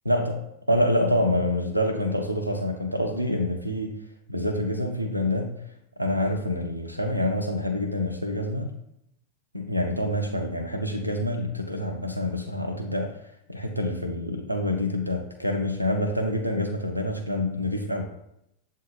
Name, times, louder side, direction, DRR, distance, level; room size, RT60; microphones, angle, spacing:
voice 1, 0.1-4.0 4.3-5.6 6.0-8.7 9.5-13.2 13.5-18.0, left 1 dB, 90° right, 3 dB, 0.4 m, -27 dB
7.5 x 2.7 x 2.2 m, 0.79 s
figure-of-eight pair, 90°, 0 cm